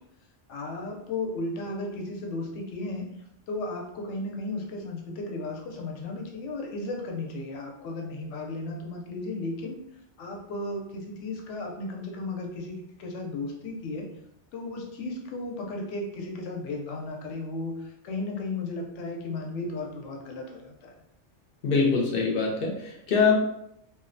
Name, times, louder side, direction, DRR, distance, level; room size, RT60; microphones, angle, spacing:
voice 1, 0.5-3.1 3.5-9.8 10.2-14.1 14.5-20.9, left 2 dB, 85° left, 1 dB, 0.9 m, -35 dB
voice 2, 21.6-23.4, left 4 dB, 60° left, 0 dB, 0.7 m, -23 dB
2.6 x 2.0 x 2.5 m, 0.79 s
omnidirectional pair, 1.2 m